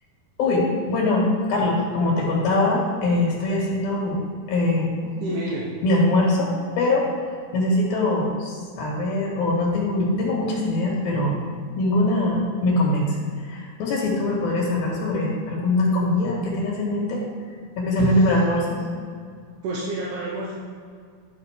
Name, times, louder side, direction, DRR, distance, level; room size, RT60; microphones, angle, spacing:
voice 1, 0.4-4.2 4.5-4.9 5.8-6.5 6.8-11.4 11.8-13.2 13.4-17.2 17.8-18.8, left 2 dB, 75° left, -3 dB, 3.6 m, -22 dB
voice 2, 5.0-5.7 19.6-20.5, right 1 dB, 65° right, -5 dB, 2.3 m, -29 dB
12.0 x 6.5 x 3.7 m, 2.1 s
omnidirectional pair, 4.3 m